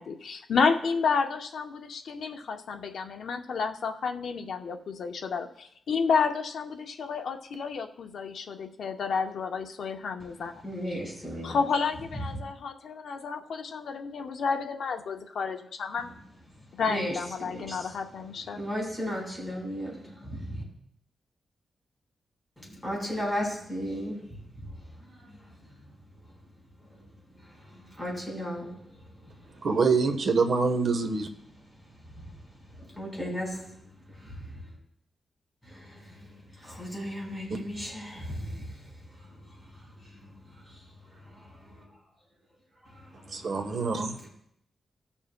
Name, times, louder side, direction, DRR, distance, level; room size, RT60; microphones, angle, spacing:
voice 1, 0.0-10.5 10.9-11.0 11.4-16.1 16.7-18.6, left 5 dB, 70° left, 0.8 m, -30 dB
voice 2, 10.6-11.6 16.9-17.1 17.4-17.8 18.6-20.6 22.6-24.2 28.0-28.7 32.2-32.3 33.0-33.6 35.7-35.8 36.2-36.3 36.6-38.6 41.7-41.8, equal, 5° left, 4.4 m, -34 dB
voice 3, 29.6-31.3 43.3-44.3, right 4 dB, 55° right, 1.1 m, -25 dB
18.0 x 7.2 x 2.2 m
wide cardioid pair, 130°, 0 cm